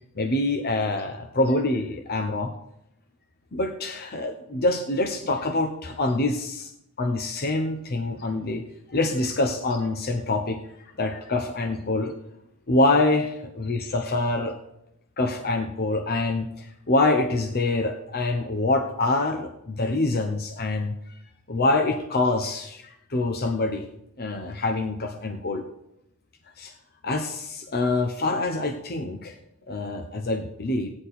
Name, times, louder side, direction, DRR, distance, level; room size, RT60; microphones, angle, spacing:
voice 1, 0.2-2.5 3.5-6.7 7.0-8.6 8.9-10.6 11.0-12.1 12.7-14.6 15.2-20.9 21.5-23.8 24.2-25.6 26.6-26.7 27.0-29.3 29.7-30.9, left 2 dB, 45° left, 5 dB, 0.9 m, -25 dB
15.5 x 9.9 x 4.2 m, 0.82 s
head